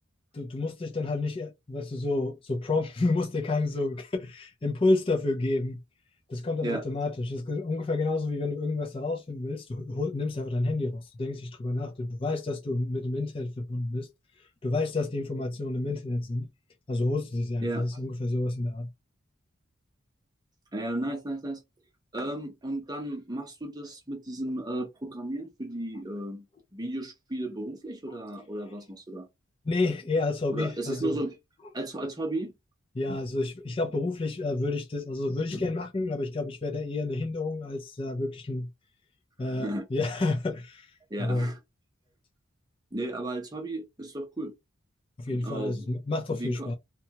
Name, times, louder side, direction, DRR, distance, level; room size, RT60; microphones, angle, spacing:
voice 1, 0.3-5.8 6.3-14.1 14.6-16.5 16.9-18.9 29.6-31.2 32.9-38.7 39.4-40.9 41.2-41.5 45.2-46.7, left 2 dB, 25° left, 0.4 m, -29 dB
voice 2, 20.7-21.6 22.1-26.5 26.7-29.3 30.5-31.3 31.7-32.5 39.4-39.9 41.1-41.6 42.9-44.5 45.3-45.9 46.3-46.7, right 1 dB, 20° right, 0.7 m, -34 dB
2.7 x 2.3 x 2.8 m
head